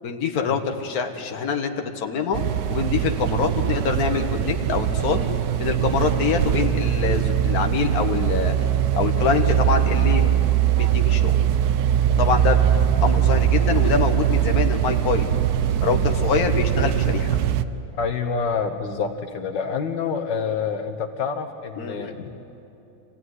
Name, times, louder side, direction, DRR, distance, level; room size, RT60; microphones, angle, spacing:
voice 1, 0.0-2.4 2.7-5.3 5.6-8.6 8.9-10.3 10.8-11.4 12.2-12.6 13.0-15.3 15.8-17.4 21.8-22.2, left 6 dB, 55° left, 5 dB, 1.8 m, -25 dB
sound 1, 2.3-17.6, right 10 dB, 65° right, 1.1 m, -21 dB
voice 2, 17.9-19.1 19.3-22.3, left 5 dB, 80° left, 6 dB, 1.7 m, -27 dB
25.0 x 16.5 x 9.6 m, 2.9 s
omnidirectional pair, 1.9 m